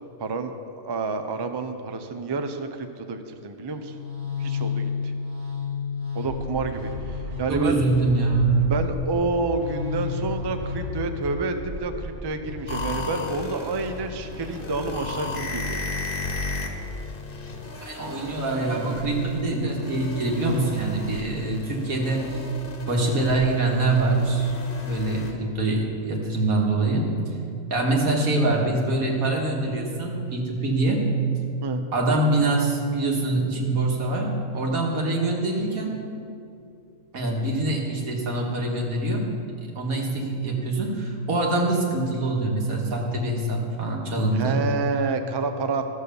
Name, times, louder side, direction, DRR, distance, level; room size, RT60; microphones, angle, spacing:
voice 1, 0.2-3.9 4.4-5.1 6.1-7.8 8.6-15.9 31.6-31.8 44.3-45.9, right 3 dB, 35° right, 7 dB, 0.4 m, -29 dB
sound 1, 3.6-15.5, left 4 dB, 70° right, 1.5 m, -33 dB
voice 2, 7.5-8.5 17.8-22.4 22.9-24.5 24.8-27.1 27.7-31.0 31.9-35.9 37.1-39.2 39.8-44.6, right 2 dB, 90° right, -1 dB, 2.1 m, -24 dB
sound 2, 12.7-25.3, left 3 dB, 45° left, 1.2 m, -35 dB
13.5 x 6.4 x 6.9 m, 2.5 s
omnidirectional pair, 1.4 m